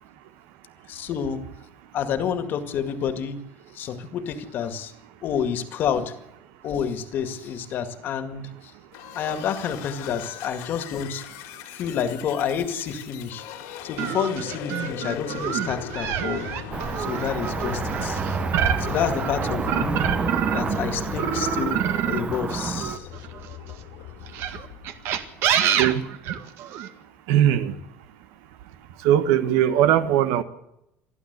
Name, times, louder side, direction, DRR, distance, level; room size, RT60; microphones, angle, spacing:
voice 1, 0.9-1.4 1.9-3.4 3.7-4.9 5.2-6.1 6.6-8.5 9.1-11.2 11.7-13.4 13.8-16.5 17.0-18.2 18.8-20.1 20.5-21.8 22.1-23.1, left 7 dB, 45° left, 2.0 m, -29 dB
sound 1, 8.9-25.6, left 10 dB, 85° left, 2.8 m, -38 dB
sound 2, 14.0-20.8 21.2-23.6 24.3-26.9, right 9 dB, 60° right, 1.9 m, -27 dB
Cricket / Motor vehicle (road), 16.7-23.0, right 6 dB, 25° right, 0.7 m, -29 dB
voice 2, 27.3-27.7 29.0-30.4, right 11 dB, 90° right, 1.5 m, -19 dB
28.0 x 11.5 x 8.1 m
cardioid pair, 155°, 5 cm